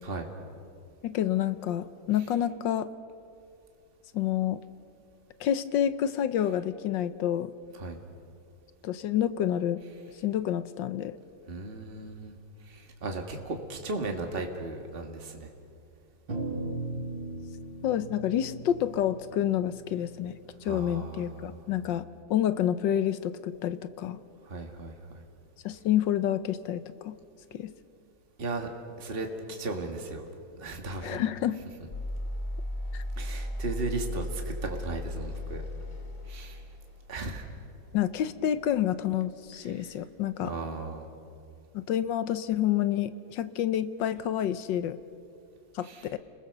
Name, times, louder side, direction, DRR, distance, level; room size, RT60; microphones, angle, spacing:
voice 1, 1.0-2.9 4.1-4.6 5.4-7.5 8.8-9.8 10.2-11.1 17.8-20.3 20.6-22.0 22.3-24.2 25.6-27.1 27.5-27.7 31.0-31.6 32.9-33.0 37.9-40.5 41.7-45.0 45.7-46.2, left 10 dB, 75° left, 13 dB, 1.4 m, -28 dB
voice 2, 11.5-12.4 12.7-15.5 20.7-21.6 24.4-25.2 28.4-28.7 29.0-30.2 30.6-31.2 33.2-35.6 36.3-36.6 37.1-37.5 40.4-41.1 45.8-46.1, right 2 dB, 30° right, 3 dB, 2.0 m, -36 dB
sound 1, 16.3-20.8, right 2 dB, 85° right, 3.9 m, -38 dB
sound 2, 31.9-40.0, left 1 dB, 45° left, 2.5 m, -37 dB
30.0 x 21.0 x 6.7 m, 2.4 s
omnidirectional pair, 2.1 m